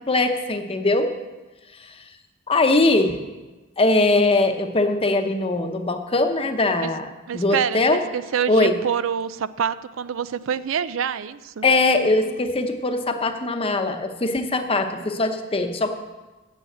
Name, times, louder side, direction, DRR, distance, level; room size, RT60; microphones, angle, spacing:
voice 1, 0.1-1.1 1.8-2.0 2.5-3.2 3.8-8.0 8.5-8.7 11.6-15.9, left 2 dB, 30° left, 6 dB, 0.8 m, -21 dB
voice 2, 7.3-11.7, right 8 dB, 75° right, 15 dB, 0.4 m, -26 dB
9.1 x 7.1 x 8.0 m, 1.2 s
head